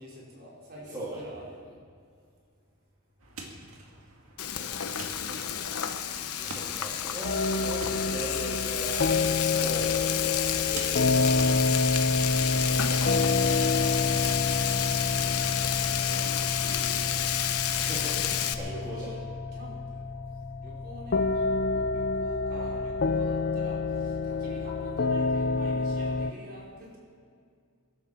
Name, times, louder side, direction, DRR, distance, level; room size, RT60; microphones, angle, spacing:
voice 1, 0.0-1.8 16.0-17.1 19.5-20.1 20.5-27.0, equal, 45° right, -4 dB, 5.1 m, -46 dB
voice 2, 0.9-1.3 4.6-4.8 5.1-5.6 6.3-11.7 12.1-16.0 16.6-16.7 17.5-19.4, right 1 dB, 20° right, -7 dB, 2.9 m, -40 dB
sound 1, 3.2-16.4, right 2 dB, 65° right, 2.2 m, -48 dB
Frying (food), 4.4-18.5, left 10 dB, 85° left, 0.9 m, -30 dB
sound 2, 7.2-26.3, left 3 dB, 45° left, 0.6 m, -28 dB
22.5 x 12.0 x 4.6 m, 2.2 s
head